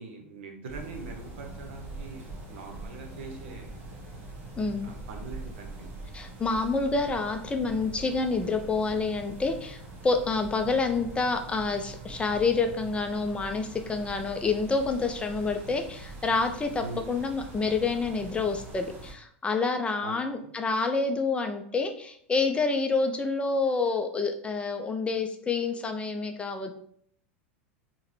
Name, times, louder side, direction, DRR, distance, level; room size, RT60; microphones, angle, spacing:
voice 1, 0.0-3.7 4.8-5.9 16.8-17.0 20.0-20.5, right 3 dB, 70° right, 3 dB, 0.7 m, -42 dB
sound 1, 0.7-19.1, right 2 dB, 35° right, 1.2 m, -43 dB
voice 2, 4.6-4.9 6.1-26.7, left 4 dB, 15° left, 5 dB, 0.4 m, -28 dB
3.7 x 2.1 x 3.1 m, 0.64 s
hypercardioid pair, 90°, 6 cm